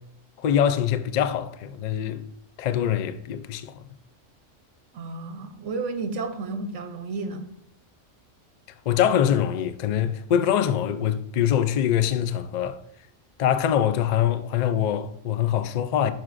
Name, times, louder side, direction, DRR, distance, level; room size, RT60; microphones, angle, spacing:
voice 1, 0.4-2.2 2.6-3.9 8.9-12.8 13.4-16.1, left 9 dB, 90° left, 0.3 m, -24 dB
voice 2, 4.9-7.4, right 3 dB, 70° right, 1.1 m, -32 dB
10.5 x 6.1 x 2.5 m
omnidirectional pair, 1.3 m